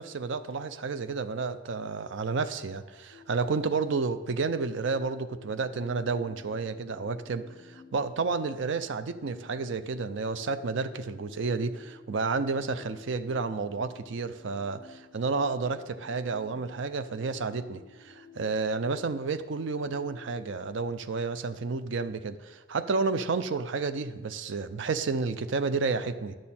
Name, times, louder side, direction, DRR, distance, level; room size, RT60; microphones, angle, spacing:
voice 1, 0.0-26.4, right 4 dB, 60° right, 10 dB, 0.4 m, -31 dB
sound 1, 3.1-20.6, left 5 dB, 65° left, 0.5 m, -53 dB
10.5 x 6.2 x 4.2 m, 1.3 s
head